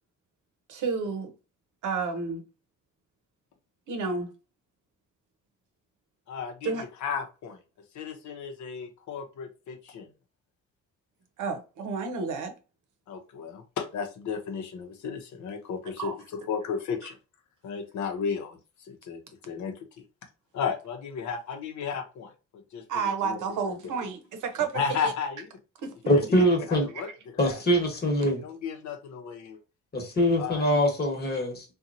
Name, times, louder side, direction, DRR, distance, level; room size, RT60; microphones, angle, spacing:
voice 1, 0.7-1.3 1.8-2.4 3.9-4.3 6.6-6.8 11.4-12.5 16.0-16.1 22.9-25.1 25.8-25.9, right 5 dB, 80° right, 0.8 m, -31 dB
voice 2, 6.3-7.6 7.9-10.1 13.1-17.2 17.6-19.7 20.5-23.8 24.7-25.5 26.1-26.4 26.7-27.6 28.4-29.6 30.4-30.7, left 6 dB, 70° left, 0.7 m, -34 dB
voice 3, 26.1-26.9 27.4-28.4 29.9-31.6, equal, 30° left, 1.1 m, -23 dB
2.8 x 2.3 x 2.5 m
cardioid pair, 90°, 30 cm